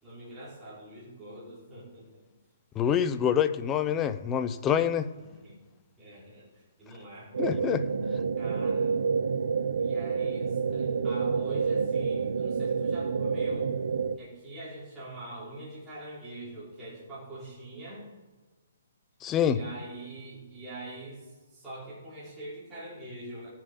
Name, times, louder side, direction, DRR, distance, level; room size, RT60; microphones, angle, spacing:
voice 1, 0.0-2.3 5.2-5.6 6.0-7.3 8.4-9.0 9.8-13.7 14.1-18.1 19.4-23.5, right 1 dB, 10° right, -10 dB, 4.5 m, -44 dB
voice 2, 2.8-5.1 7.4-7.8 19.2-19.6, left 9 dB, 15° left, 10 dB, 0.7 m, -26 dB
sound 1, 7.3-14.2, right 5 dB, 75° right, 0.7 m, -28 dB
18.0 x 7.4 x 5.4 m, 1.3 s
hypercardioid pair, 155°, 0 cm